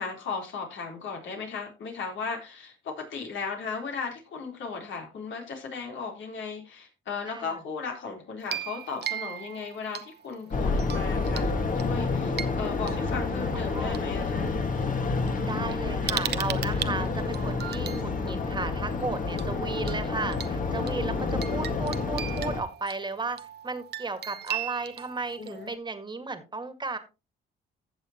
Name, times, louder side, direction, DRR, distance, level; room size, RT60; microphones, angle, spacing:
voice 1, 0.0-11.5 11.7-14.5 16.8-17.1 25.4-25.7, left 5 dB, 70° left, 1 dB, 3.9 m, -36 dB
voice 2, 7.3-7.6 13.5-14.0 15.4-23.4 23.6-27.0, right 3 dB, 20° right, 9 dB, 1.9 m, -34 dB
sound 1, 8.4-10.3 10.8-11.5 11.8-14.0 14.8-14.9 15.3-18.0 19.4-19.6 19.9-20.0 20.3-25.8, right 10 dB, 55° right, 0.9 m, -38 dB
sound 2, 10.5-22.6, left 4 dB, 40° left, 1.8 m, -29 dB
15.0 x 6.8 x 3.0 m, 0.29 s
cardioid pair, 90°, 20 cm